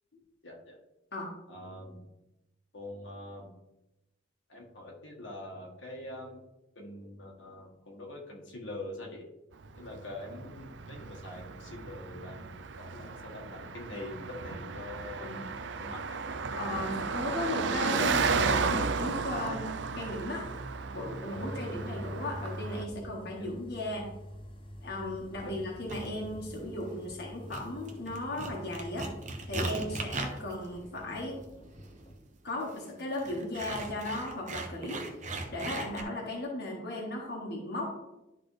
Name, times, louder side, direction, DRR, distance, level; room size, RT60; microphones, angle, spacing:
voice 1, 0.4-0.8 1.5-2.0 2.7-3.5 4.5-6.4 6.7-9.2 9.8-15.3 15.8-16.2 16.5-16.6 25.4-25.5, left 1 dB, 80° left, -2 dB, 1.7 m, -44 dB
Car passing by, 9.6-22.8, right 4 dB, 65° right, 0.5 m, -34 dB
voice 2, 16.6-19.7 20.0-20.4 20.9-24.1 24.8-29.1 29.5-31.4 32.4-35.0 35.3-37.9, left 1 dB, 60° left, -2 dB, 1.5 m, -36 dB
sound 1, 21.3-32.1, equal, 30° left, 0.9 m, -45 dB
sound 2, 25.9-26.1 26.8-27.2 27.5-36.0, right 3 dB, 40° right, 0.9 m, -39 dB
12.0 x 4.1 x 3.3 m, 0.95 s
head